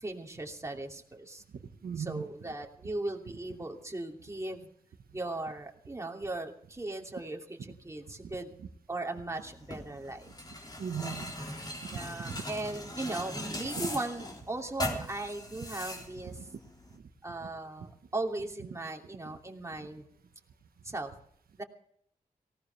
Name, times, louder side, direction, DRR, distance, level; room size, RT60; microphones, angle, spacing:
voice 1, 0.0-1.4 2.0-4.7 5.1-7.6 7.8-8.5 8.9-10.3 11.9-16.5 17.2-20.1 20.8-21.1 21.6-21.7, right 2 dB, 20° right, 1 dB, 2.8 m, -38 dB
voice 2, 1.8-2.3 7.6-7.7 8.6-8.7 10.8-11.3 11.9-12.0 12.2-12.4 13.8-13.9 16.3-16.4, right 7 dB, 85° right, 5 dB, 1.4 m, -37 dB
sound 1, 9.3-17.0, left 1 dB, 25° left, 3.7 m, -40 dB
19.0 x 17.0 x 3.4 m, 0.66 s
cardioid pair, 75°, 15 cm